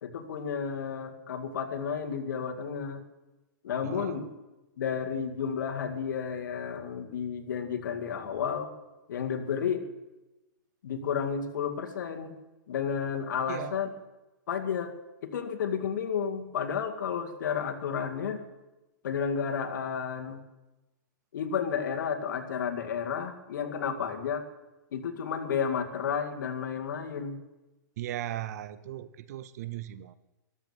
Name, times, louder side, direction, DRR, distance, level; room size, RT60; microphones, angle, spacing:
voice 1, 0.0-3.0 3.6-4.3 4.8-8.7 9.1-9.8 10.8-12.3 12.7-13.9 14.5-14.9 15.2-18.4 19.0-20.4 21.3-24.4 24.9-27.4, left 7 dB, 70° left, 6 dB, 2.2 m, -32 dB
voice 2, 3.8-4.3 13.5-13.8 28.0-30.1, right 13 dB, 50° right, 16 dB, 0.6 m, -37 dB
13.5 x 13.0 x 7.2 m, 1.0 s
hypercardioid pair, 155°, 11 cm